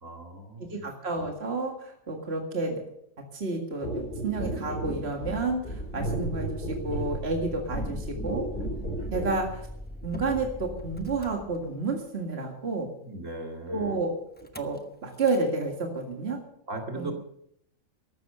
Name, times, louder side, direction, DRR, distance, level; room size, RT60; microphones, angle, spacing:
voice 1, 0.0-0.8 13.0-14.0 16.7-17.1, right 2 dB, 70° right, 3 dB, 2.8 m, -38 dB
voice 2, 0.7-2.8 3.3-8.5 9.1-9.7 10.0-12.9 13.7-14.1 14.5-16.4 17.0-17.1, right 3 dB, 50° right, 2 dB, 2.2 m, -30 dB
sound 1, 3.8-9.4 10.3-10.4, right 1 dB, 40° left, 4.4 m, -34 dB
Motor vehicle (road), 5.7-12.1 14.3-14.8 15.1-15.5, left 1 dB, 10° left, 0.9 m, -41 dB
14.0 x 12.5 x 6.7 m, 0.73 s
omnidirectional pair, 1.4 m